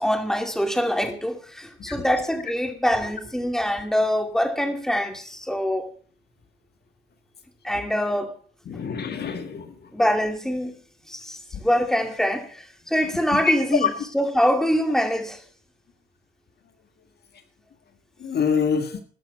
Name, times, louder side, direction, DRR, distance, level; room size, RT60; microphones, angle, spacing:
voice 1, 0.0-5.9 7.6-8.3 9.9-10.8 11.1-15.4, equal, ahead, 2.5 m, -24 dB
voice 2, 8.7-9.7 11.5-11.6 13.3-13.5 13.8-13.9 18.2-19.0, left 6 dB, 55° left, 1.8 m, -25 dB
13.5 x 11.0 x 5.7 m
cardioid pair, 90°, 20 cm